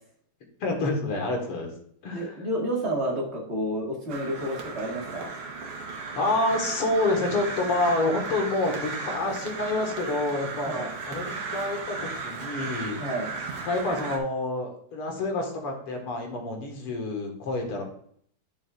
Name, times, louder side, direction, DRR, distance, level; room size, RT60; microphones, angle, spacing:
voice 1, 0.6-1.7 2.0-2.4 6.2-13.0 13.6-17.8, left 2 dB, 80° left, 2 dB, 2.6 m, -28 dB
voice 2, 2.1-5.3 10.7-10.9 13.0-13.3, right 1 dB, 30° right, -2 dB, 2.1 m, -30 dB
Crow, 4.1-14.2, right 4 dB, 90° right, 2.2 m, -35 dB
10.0 x 6.5 x 2.4 m, 0.63 s
omnidirectional pair, 2.4 m